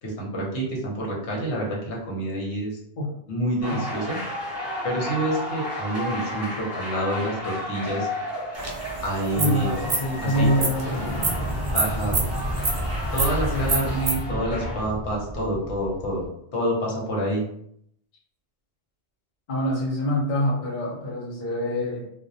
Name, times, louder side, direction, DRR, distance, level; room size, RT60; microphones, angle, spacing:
voice 1, 0.0-2.8 3.3-4.2 4.8-8.1 9.0-9.8 10.2-10.5 11.7-12.2 13.1-17.4, right 1 dB, 80° left, -2 dB, 1.1 m, -27 dB
sound 1, 3.6-14.8, equal, 15° right, 0.6 m, -33 dB
sound 2, 8.6-14.1, right 3 dB, 55° right, 0.3 m, -29 dB
voice 2, 9.3-11.0 13.5-13.9 19.5-22.1, left 1 dB, 50° left, -3 dB, 0.7 m, -25 dB
Explosion, 10.7-16.3, equal, 20° left, 0.9 m, -31 dB
2.2 x 2.1 x 2.6 m, 0.70 s
omnidirectional pair, 1.1 m